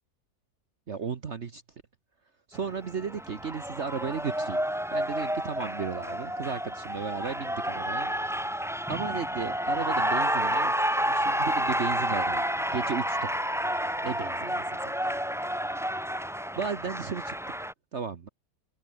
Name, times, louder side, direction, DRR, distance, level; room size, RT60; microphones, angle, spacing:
voice 1, 0.9-1.6 2.5-4.6 4.9-8.1 8.9-10.7 11.1-12.5 12.7-13.4 14.0-14.9 16.5-17.3 17.9-18.3, right 6 dB, 50° right, 1.4 m, -34 dB
Cheering, 2.5-17.7, equal, ahead, 1.0 m, -30 dB
omnidirectional pair, 1.6 m